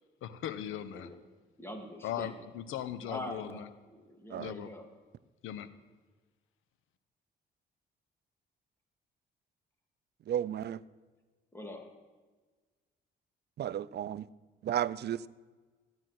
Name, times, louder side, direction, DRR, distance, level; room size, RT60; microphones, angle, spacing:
voice 1, 0.2-1.1 2.0-3.7 4.4-4.7 5.4-5.7, left 10 dB, 85° left, 1.0 m, -38 dB
voice 2, 1.6-2.3 3.1-4.9 11.5-11.9, left 1 dB, 10° left, 2.7 m, -43 dB
voice 3, 10.3-10.8 13.6-14.3 14.6-15.3, right 10 dB, 55° right, 0.5 m, -33 dB
14.0 x 9.7 x 7.7 m
cardioid pair, 90°, 20 cm